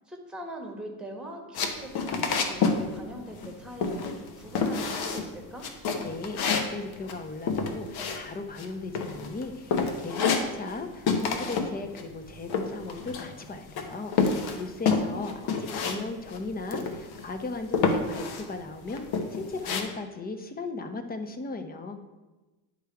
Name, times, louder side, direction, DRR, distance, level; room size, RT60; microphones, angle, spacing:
voice 1, 0.1-5.7 14.9-15.4, right 1 dB, ahead, 2 dB, 1.4 m, -41 dB
sound 1, 1.5-2.8 3.1-3.5 3.8-4.3 4.6-5.3 5.6-8.7 8.9-9.4 9.7-10.8 11.1-11.7 12.0-13.4 13.8-16.0 16.3-16.4 16.7-17.3 17.7-18.5 18.9-19.8, left 5 dB, 55° left, 1.1 m, -28 dB
voice 2, 6.0-22.0, left 3 dB, 20° left, 8 dB, 0.8 m, -37 dB
10.0 x 3.6 x 4.7 m, 1.1 s
supercardioid pair, 100°, 44 cm